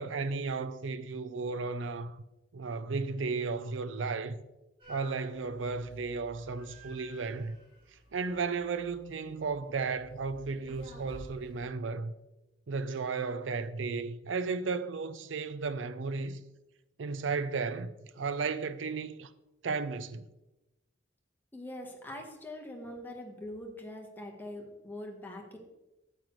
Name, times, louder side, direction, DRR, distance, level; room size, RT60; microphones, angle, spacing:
voice 1, 0.0-2.2 2.5-4.4 4.9-7.6 8.1-12.1 12.7-16.4 17.0-19.3 19.6-20.3, right 4 dB, 90° right, 0.5 m, -34 dB
sound 1, 4.8-11.6, equal, 30° right, 2.8 m, -53 dB
voice 2, 21.5-25.6, left 1 dB, 10° left, 1.2 m, -43 dB
8.8 x 8.0 x 3.1 m
head